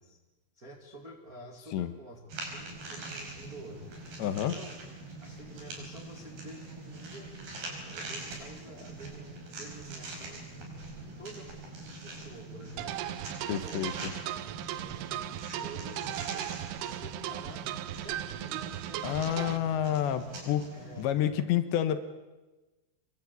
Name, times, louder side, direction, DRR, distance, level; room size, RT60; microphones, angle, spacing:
voice 1, 0.5-3.9 4.3-4.7 5.2-7.3 7.6-11.5 12.0-13.0 13.5-13.9 14.4-15.2 15.6-17.7 18.0-19.6 20.7-21.3, right 1 dB, 30° right, 2 dB, 1.6 m, -49 dB
sound 1, 2.3-21.1, right 2 dB, 55° right, 7.0 m, -44 dB
voice 2, 4.2-4.6 13.5-14.1 19.0-20.7 21.0-22.0, left 10 dB, 75° left, 11 dB, 3.2 m, -29 dB
sound 2, 12.8-19.6, right 13 dB, 85° right, 3.6 m, -37 dB
25.0 x 22.5 x 8.5 m, 1.1 s
omnidirectional pair, 5.6 m